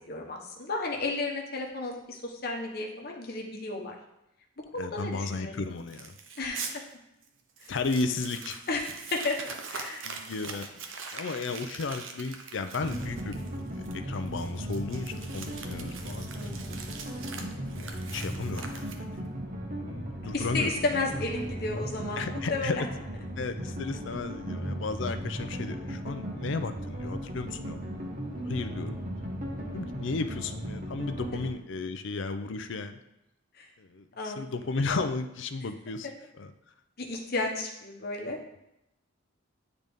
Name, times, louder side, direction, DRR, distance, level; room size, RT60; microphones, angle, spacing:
voice 1, 0.1-3.9 4.7-5.8 6.4-6.7 7.6-7.7 8.7-10.1 16.4-16.8 20.3-22.8 28.4-28.5 33.6-33.7 34.2-34.7 36.0-36.1 37.0-38.4, left 3 dB, 50° left, 0 dB, 1.0 m, -33 dB
voice 2, 4.8-6.2 7.7-8.6 10.0-10.7 11.1-13.4 13.9-16.3 17.1-17.2 18.1-19.2 19.9-20.7 22.2-22.8 23.4-28.1 28.5-29.0 29.7-33.0 33.8-36.1 36.4-36.5, left 3 dB, 65° left, 9 dB, 0.5 m, -34 dB
Crumpling crinkling, 5.9-6.7 7.2-7.3 7.6-19.3, right 5 dB, 70° right, 0.7 m, -42 dB
sound 1, 12.8-31.5, equal, 40° right, 1.0 m, -37 dB
8.8 x 3.9 x 3.6 m, 0.86 s
head